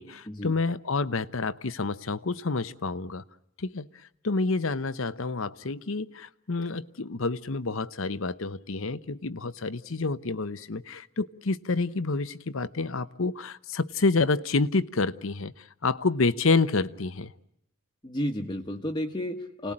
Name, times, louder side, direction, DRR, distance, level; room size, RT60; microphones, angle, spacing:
voice 1, 0.0-3.2 3.6-3.9 4.2-17.3, left 3 dB, 70° left, 0.9 m, -28 dB
voice 2, 18.0-19.7, left 1 dB, 20° left, 1.3 m, -32 dB
29.0 x 19.0 x 8.8 m
head